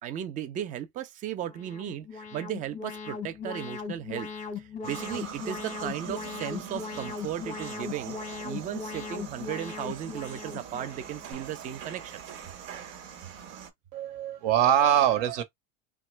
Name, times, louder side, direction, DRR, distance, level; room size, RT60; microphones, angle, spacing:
voice 1, 0.0-4.3 4.6-8.2 8.4-12.2, right 10 dB, 20° right, 0.3 m, -36 dB
Alarm, 1.4-11.3, left 5 dB, 20° left, 0.8 m, -39 dB
sound 1, 4.8-13.7, right 8 dB, 75° right, 1.2 m, -43 dB
voice 2, 13.9-15.4, right 10 dB, 60° right, 1.1 m, -23 dB
2.9 x 2.2 x 3.1 m
supercardioid pair, 125°, 38 cm